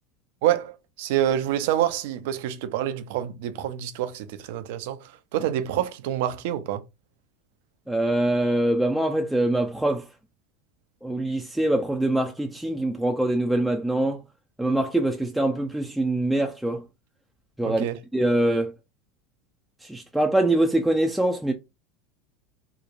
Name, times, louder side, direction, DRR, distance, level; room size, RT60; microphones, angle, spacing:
voice 1, 0.4-6.8 17.6-18.0, right 11 dB, 70° right, 0.4 m, -27 dB
voice 2, 7.9-10.1 11.0-14.2 14.6-16.8 17.6-17.8 18.1-18.7 19.8-21.5, right 1 dB, 5° right, 0.4 m, -24 dB
2.9 x 2.1 x 2.4 m
hypercardioid pair, 95°, 0 cm